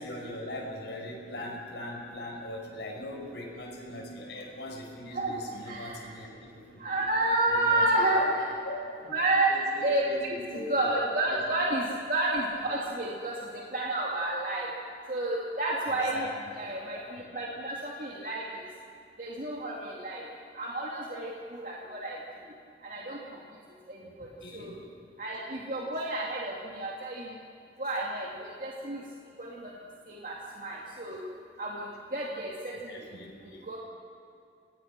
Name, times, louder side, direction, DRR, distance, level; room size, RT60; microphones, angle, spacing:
voice 1, 0.0-7.1 7.5-8.3 8.6-9.1 9.5-10.8 11.3-11.4 12.6-12.8 15.9-16.3 16.6-17.3 24.0-24.8 32.9-33.7, left 1 dB, 85° left, -1 dB, 5.6 m, -41 dB
voice 2, 5.1-6.1 6.8-8.3 9.1-10.0 10.7-13.3 13.7-14.7 15.1-18.4 19.2-20.2 20.5-22.2 22.8-23.2 23.9-24.0 24.5-24.7 25.2-27.3 27.8-29.0 29.4-29.7 30.1-31.2 31.6-31.9 32.1-32.7 33.7-33.8, right 2 dB, 50° right, -4 dB, 2.6 m, -30 dB
26.0 x 19.5 x 6.1 m, 2.5 s
head